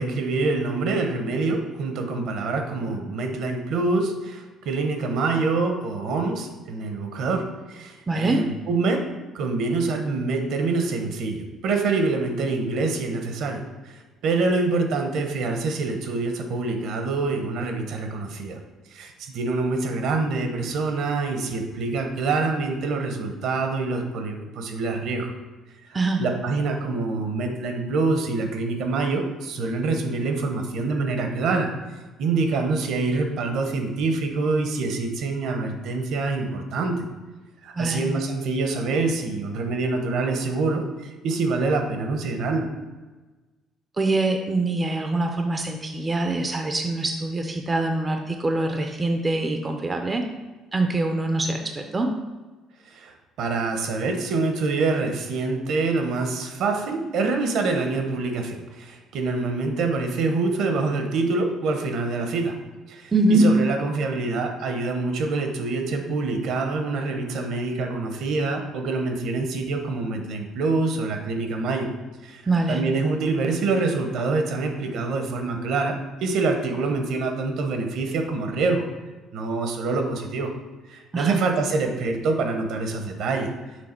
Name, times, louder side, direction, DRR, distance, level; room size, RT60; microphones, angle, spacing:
voice 1, 0.0-9.0 9.3-18.6 18.9-25.3 26.2-31.7 32.2-37.1 37.6-42.7 52.9-53.1 53.4-62.5 62.9-71.9 72.2-72.4 72.7-75.9 76.2-78.9 79.3-80.5 80.9-83.5, right 3 dB, 65° right, 5 dB, 0.8 m, -25 dB
voice 2, 8.1-8.4 25.9-26.2 37.8-38.1 44.0-50.2 50.7-52.1 63.1-63.5 72.5-72.8 81.1-81.4, right 2 dB, 20° right, 4 dB, 0.4 m, -24 dB
6.3 x 3.5 x 4.4 m, 1.2 s
cardioid pair, 150°, 0 cm